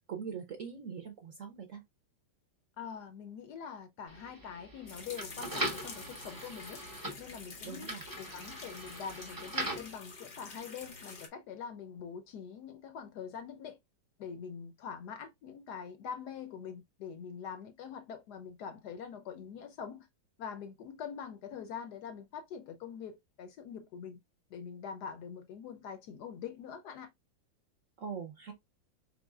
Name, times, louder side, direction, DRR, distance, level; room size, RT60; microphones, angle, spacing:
voice 1, 0.1-1.8 7.6-8.0 28.0-28.5, right 6 dB, 60° right, 0.8 m, -42 dB
voice 2, 2.8-6.8 7.2-7.9 8.2-13.8 14.2-20.1 20.4-24.2 24.5-27.1, left 7 dB, 70° left, 1.0 m, -44 dB
sound 1, 4.1-10.0, right 1 dB, 20° right, 0.6 m, -40 dB
sound 2, 4.9-11.3, left 4 dB, 55° left, 0.5 m, -48 dB
4.1 x 3.9 x 2.3 m
omnidirectional pair, 2.1 m